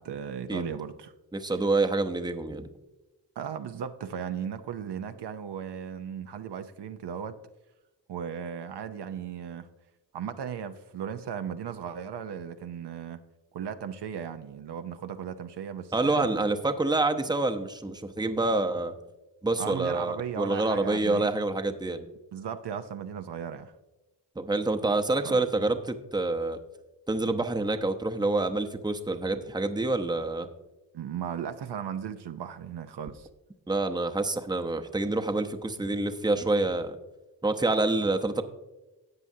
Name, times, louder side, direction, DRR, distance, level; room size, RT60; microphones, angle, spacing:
voice 1, 0.0-1.1 3.4-7.3 8.1-9.7 10.1-13.2 13.5-16.3 19.6-21.3 22.3-23.7 25.2-25.4 30.9-33.3, right 8 dB, 65° right, 8 dB, 0.7 m, -36 dB
voice 2, 1.3-2.7 15.9-18.9 19.4-22.1 24.4-26.6 27.1-30.5 33.7-37.0 37.4-38.4, right 2 dB, 10° right, 6 dB, 0.8 m, -27 dB
13.5 x 8.2 x 2.7 m, 1.1 s
cardioid pair, 50°, 44 cm